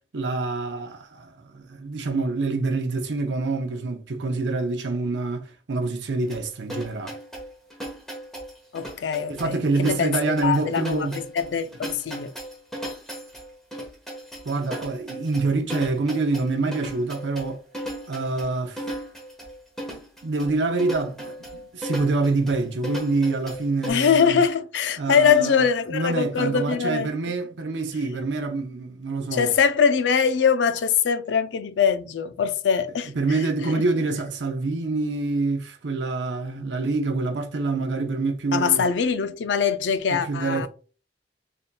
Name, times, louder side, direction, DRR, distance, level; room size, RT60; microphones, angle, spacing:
voice 1, 0.1-7.2 9.3-11.2 14.4-17.6 18.1-18.9 20.2-24.4 25.0-29.5 33.2-38.9 40.1-40.7, right 3 dB, 80° right, 0.7 m, -26 dB
sound 1, 6.3-23.9, equal, 5° left, 1.1 m, -36 dB
voice 2, 8.7-12.3 23.9-27.1 29.3-33.4 33.7-33.8 38.5-40.7, left 6 dB, 90° left, 0.4 m, -23 dB
4.0 x 3.5 x 2.2 m
head